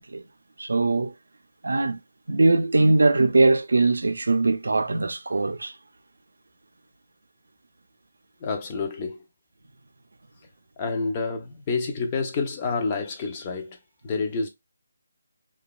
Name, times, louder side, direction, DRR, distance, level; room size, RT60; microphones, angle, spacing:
voice 1, 0.6-1.1 1.6-2.0 2.3-5.7, right 3 dB, 85° right, 0.4 m, -21 dB
voice 2, 8.4-9.2 10.8-13.8 14.0-14.5, left 4 dB, 20° left, 0.5 m, -28 dB
2.8 x 2.2 x 2.3 m
hypercardioid pair, 170°, 0 cm